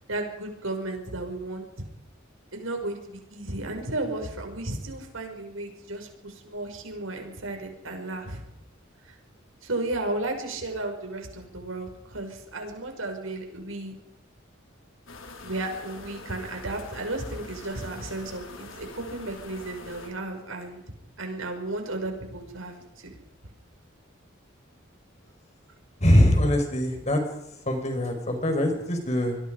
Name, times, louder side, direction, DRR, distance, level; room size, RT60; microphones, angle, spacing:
voice 1, 0.1-1.9 2.5-8.4 9.0-9.2 9.6-13.9 15.4-20.8 21.2-23.1, right 2 dB, 90° right, 4 dB, 6.0 m, -34 dB
sound 1, 15.1-20.1, left 3 dB, 80° left, 4.0 m, -44 dB
voice 2, 26.0-27.2 27.6-29.4, left 1 dB, 35° left, 5 dB, 5.0 m, -22 dB
26.0 x 21.5 x 5.1 m, 0.83 s
head